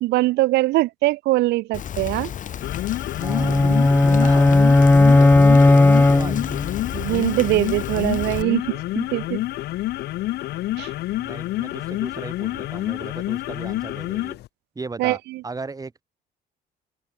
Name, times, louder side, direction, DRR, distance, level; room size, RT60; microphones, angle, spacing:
voice 1, 0.0-2.3 3.4-3.8 6.9-9.4 10.8-10.9 15.0-15.4, right 19 dB, 85° right, 1.3 m, -22 dB
Rain, 1.7-8.4, left 9 dB, 50° left, 2.5 m, -32 dB
sound 1, 2.5-14.5, left 16 dB, 75° left, 3.4 m, -28 dB
sound 2, 3.2-6.7, left 2 dB, 10° left, 1.5 m, -15 dB
voice 2, 3.2-3.6 4.0-4.5 5.1-6.5 11.1-14.4 14.7-16.0, right 3 dB, 20° right, 8.0 m, -37 dB
open air
cardioid pair, 110°, 17 cm